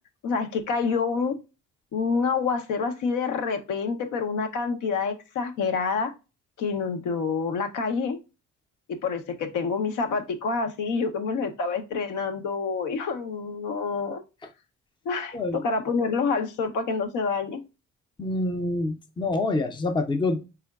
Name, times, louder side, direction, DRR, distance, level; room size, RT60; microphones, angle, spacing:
voice 1, 0.2-1.4 1.9-6.1 6.6-8.2 9.0-14.2 15.0-17.6, left 5 dB, 80° left, 0.7 m, -27 dB
voice 2, 18.2-20.5, left 2 dB, 15° left, 0.5 m, -26 dB
3.8 x 3.4 x 2.3 m
cardioid pair, 90°, 30 cm